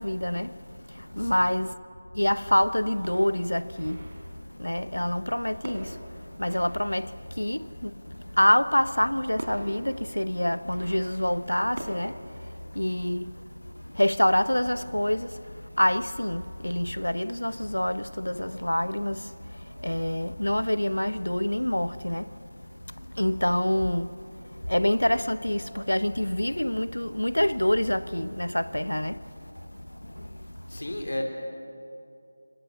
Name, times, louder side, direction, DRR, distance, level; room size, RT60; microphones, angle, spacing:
voice 1, 0.0-1.8 2.1-30.9, left 1 dB, 90° left, 0.9 m, -27 dB
sound 1, 3.0-4.5 5.6-7.6 8.8-8.9 9.4-12.0, right 1 dB, 45° right, 4.4 m, -43 dB
voice 2, 30.7-31.2, left 1 dB, 70° left, 4.2 m, -33 dB
27.5 x 25.5 x 6.9 m
figure-of-eight pair, 165°, 0 cm